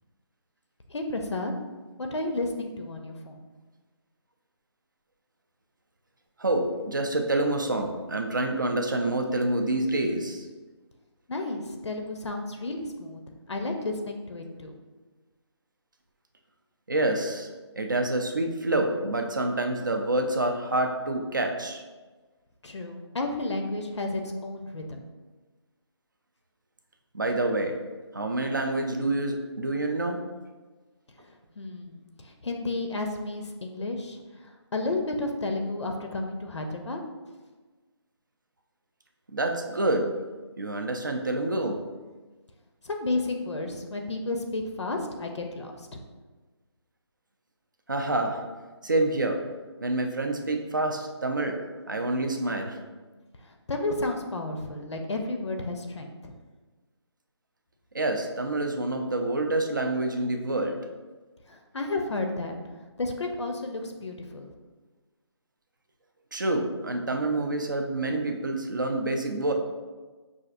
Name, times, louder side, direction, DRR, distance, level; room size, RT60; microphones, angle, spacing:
voice 1, 0.9-1.5 2.0-3.4 11.3-13.2 13.5-14.7 22.6-25.0 31.2-37.0 42.8-46.0 53.4-56.3 61.5-62.5 63.0-64.5, left 2 dB, 75° left, 3 dB, 0.5 m, -32 dB
voice 2, 6.4-10.5 16.9-17.5 17.8-21.8 27.1-27.7 28.1-30.2 39.3-40.1 40.6-41.8 47.9-48.4 48.8-49.4 49.8-51.6 51.9-52.8 57.9-60.8 66.3-69.5, right 2 dB, 45° right, 4 dB, 0.4 m, -27 dB
5.6 x 2.4 x 2.5 m, 1.3 s
figure-of-eight pair, 180°, 15 cm